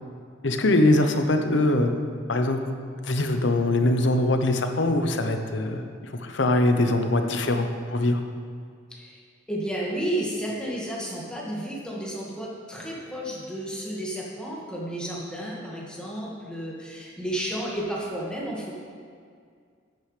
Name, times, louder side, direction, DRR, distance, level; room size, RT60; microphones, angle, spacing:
voice 1, 0.4-1.9 2.3-2.6 3.0-8.2, left 1 dB, 65° left, 6 dB, 0.8 m, -22 dB
voice 2, 8.9-9.2 9.5-18.7, right 1 dB, 5° left, -5 dB, 1.7 m, -32 dB
11.5 x 9.1 x 3.3 m, 2.1 s
head